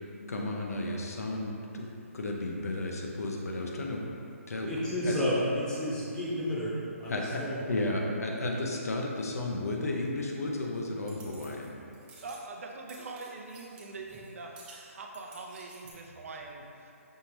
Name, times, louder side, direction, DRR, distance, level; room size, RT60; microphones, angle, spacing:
voice 1, 0.3-1.9 2.1-4.0 4.5-4.7 5.1-5.2 7.1-7.4 7.7-11.7, left 2 dB, 80° left, 0 dB, 0.7 m, -33 dB
voice 2, 4.6-6.7 7.0-7.6, equal, 10° left, -9 dB, 0.8 m, -31 dB
sound 1, 11.0-11.7 11.9-12.5 12.9-14.3 14.6-15.9, right 3 dB, 10° right, 0.4 m, -53 dB
voice 3, 12.2-16.9, right 3 dB, 65° right, 1 dB, 0.5 m, -43 dB
5.5 x 2.9 x 3.1 m, 2.7 s
hypercardioid pair, 155°, 8 cm